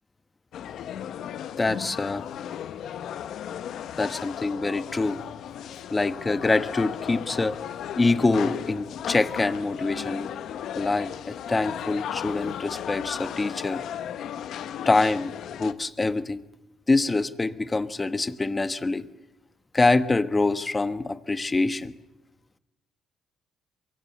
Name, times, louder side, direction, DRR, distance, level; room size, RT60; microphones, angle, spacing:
sound 1, 0.5-15.7, left 9 dB, 75° left, 1.0 m, -35 dB
voice 1, 1.6-2.2 4.0-5.2 5.9-7.6 8.0-10.3 10.7-13.8 14.9-15.3 15.6-16.4 16.9-19.0 19.7-21.9, left 3 dB, 20° left, 12 dB, 1.2 m, -25 dB
23.5 x 21.5 x 8.0 m, 1.0 s
cardioid pair, 90°, 0 cm